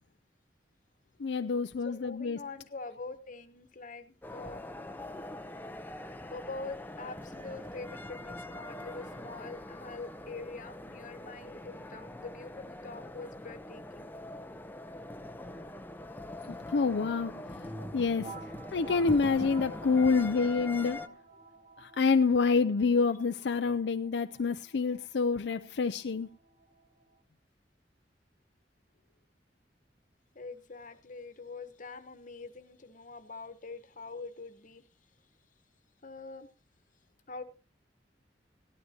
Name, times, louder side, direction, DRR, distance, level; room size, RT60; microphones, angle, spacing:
voice 1, 1.2-2.4 15.5-15.7 16.5-17.6 17.9-18.3 18.7-21.0 21.8-26.3, left 4 dB, 80° left, 0.5 m, -27 dB
voice 2, 1.8-4.7 6.3-14.1 22.9-23.0 30.3-34.9 36.0-36.5 37.3-37.4, left 3 dB, 50° left, 1.3 m, -44 dB
sound 1, 4.2-21.1, left 1 dB, 10° left, 0.8 m, -43 dB
sound 2, 17.6-27.2, right 2 dB, 40° right, 1.9 m, -50 dB
17.5 x 12.0 x 2.9 m
head